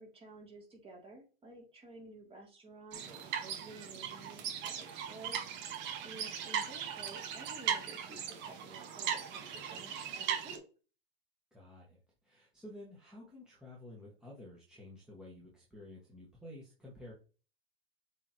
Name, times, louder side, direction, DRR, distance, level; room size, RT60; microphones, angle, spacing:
voice 1, 0.0-5.7 6.0-10.6, right 2 dB, 20° right, -1 dB, 3.0 m, -53 dB
sound 1, 2.9-10.6, right 8 dB, 40° right, 1.4 m, -38 dB
voice 2, 11.5-17.1, left 1 dB, ahead, -5 dB, 1.9 m, -52 dB
7.2 x 4.1 x 3.1 m, 0.35 s
hypercardioid pair, 115°, 29 cm